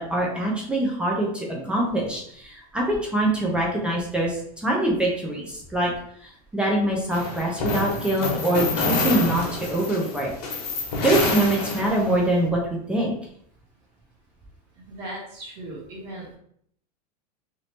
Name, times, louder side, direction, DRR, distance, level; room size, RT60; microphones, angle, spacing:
voice 1, 0.0-5.9 6.2-10.3 11.0-12.6 12.9-13.1, right 1 dB, 5° right, -3 dB, 0.3 m, -24 dB
sound 1, 7.1-12.3, left 3 dB, 80° left, 1.0 m, -27 dB
voice 2, 14.9-16.4, right 1 dB, 45° right, -2 dB, 1.2 m, -37 dB
2.9 x 2.6 x 3.1 m, 0.66 s
supercardioid pair, 165°, 20 cm